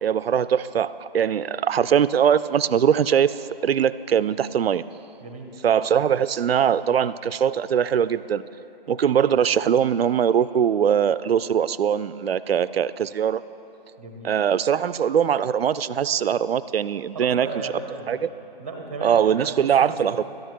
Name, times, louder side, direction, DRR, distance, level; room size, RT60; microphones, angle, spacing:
voice 1, 0.0-4.8 5.6-8.4 8.9-13.4 14.2-17.5 18.1-18.3 19.0-20.2, right 8 dB, 90° right, 16 dB, 0.5 m, -21 dB
voice 2, 5.2-5.5 14.0-14.3 17.1-18.2 18.6-20.2, right 2 dB, 15° right, 2 dB, 0.7 m, -36 dB
13.0 x 10.5 x 4.5 m, 3.0 s
hypercardioid pair, 170°, 29 cm